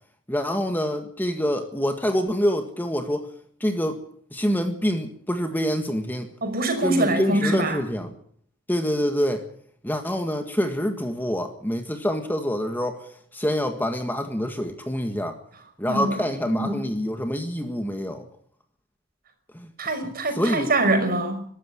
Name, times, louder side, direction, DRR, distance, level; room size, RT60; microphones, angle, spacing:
voice 1, 0.3-3.3 3.6-4.0 4.3-6.3 6.8-8.1 8.7-9.4 9.8-15.4 15.8-18.2 19.5-19.7 20.3-20.7, equal, 10° left, 6 dB, 1.7 m, -26 dB
voice 2, 6.4-7.8 15.9-16.2 16.5-16.8 19.8-21.5, right 2 dB, 45° right, 6 dB, 5.6 m, -24 dB
23.0 x 13.5 x 9.8 m, 0.62 s
head